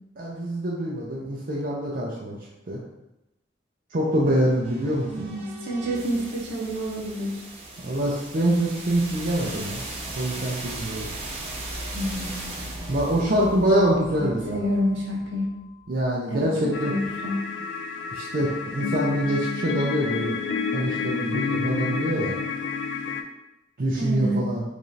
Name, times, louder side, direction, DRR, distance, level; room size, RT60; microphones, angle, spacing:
voice 1, 0.2-2.4 2.7-2.8 3.9-5.3 7.8-9.8 10.1-11.1 12.9-14.7 15.9-16.9 18.1-20.4 20.7-22.4 23.8-24.6, right 1 dB, 50° right, -4 dB, 0.5 m, -25 dB
sound 1, 4.2-16.1, right 1 dB, 35° right, 1.1 m, -38 dB
voice 2, 5.0-7.3 11.9-12.7 14.1-15.5 16.3-17.4 24.0-24.4, equal, 75° right, -2 dB, 0.9 m, -28 dB
sound 2, 16.7-23.2, left 5 dB, 75° left, 0.4 m, -29 dB
4.7 x 2.4 x 2.7 m, 0.92 s
head